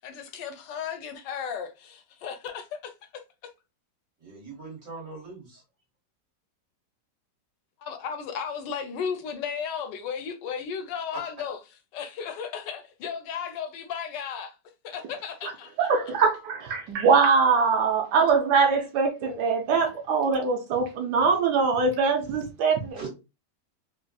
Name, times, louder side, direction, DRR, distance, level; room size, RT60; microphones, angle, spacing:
voice 1, 0.0-3.5 7.8-14.5 15.1-15.9, left 7 dB, 85° left, 1.3 m, -35 dB
voice 2, 4.2-5.6 23.0-23.1, right 4 dB, 50° right, 2.3 m, -40 dB
voice 3, 15.8-23.1, right 5 dB, 75° right, 1.2 m, -22 dB
3.9 x 2.5 x 2.2 m
omnidirectional pair, 1.9 m